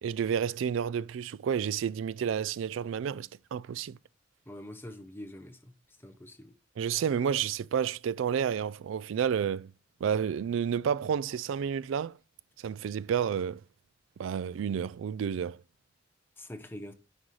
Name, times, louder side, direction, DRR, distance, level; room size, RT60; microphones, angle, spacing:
voice 1, 0.0-4.0 6.8-9.7 10.0-12.2 12.6-13.6 14.2-15.6, right 8 dB, 80° right, 0.3 m, -30 dB
voice 2, 4.5-5.7 6.0-6.5 16.4-16.9, left 1 dB, 10° left, 0.8 m, -44 dB
9.8 x 5.4 x 3.2 m
head